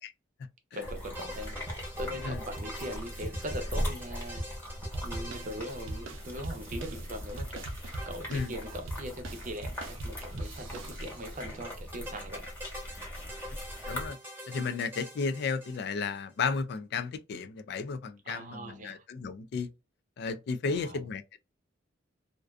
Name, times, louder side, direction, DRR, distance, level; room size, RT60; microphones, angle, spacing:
voice 1, 0.7-1.6 2.0-4.4 5.0-7.7 8.0-12.5 18.3-19.0 20.6-21.0, equal, 40° right, 0.6 m, -40 dB
sound 1, 0.8-14.1, equal, 10° left, 1.0 m, -39 dB
sound 2, 0.9-6.7 8.0-8.8 9.1-9.2 9.3-9.4 11.7-16.2, equal, 10° right, 0.8 m, -45 dB
sound 3, 4.9-11.4, right 2 dB, 85° right, 0.5 m, -42 dB
voice 2, 13.9-14.2 14.5-19.7 20.2-21.4, left 5 dB, 60° left, 0.3 m, -33 dB
2.4 x 2.2 x 2.3 m
head